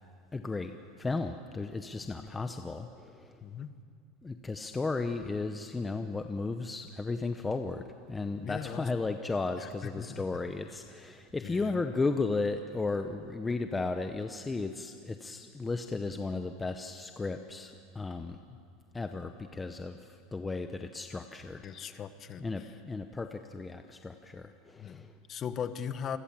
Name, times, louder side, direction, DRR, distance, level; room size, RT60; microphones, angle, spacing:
voice 1, 0.3-3.4 4.2-18.4 18.9-22.0 22.4-25.1, left 3 dB, 10° left, 7 dB, 0.8 m, -35 dB
voice 2, 3.4-3.7 8.4-8.9 9.6-10.4 11.4-11.8 18.5-18.6 21.6-22.5 24.8-26.2, left 8 dB, 30° left, 11 dB, 1.2 m, -39 dB
28.0 x 21.5 x 7.5 m, 2.3 s
supercardioid pair, 150°, 0 cm